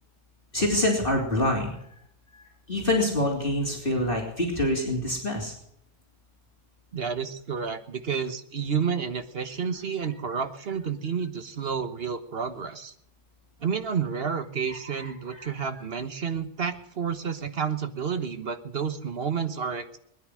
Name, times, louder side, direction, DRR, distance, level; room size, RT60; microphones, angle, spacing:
voice 1, 0.5-1.7 2.3-5.5 15.0-15.5, left 1 dB, 35° left, 0 dB, 3.4 m, -26 dB
voice 2, 6.9-12.9 13.6-20.0, right 6 dB, 40° right, 9 dB, 1.3 m, -30 dB
20.5 x 10.5 x 6.4 m, 0.71 s
omnidirectional pair, 1.7 m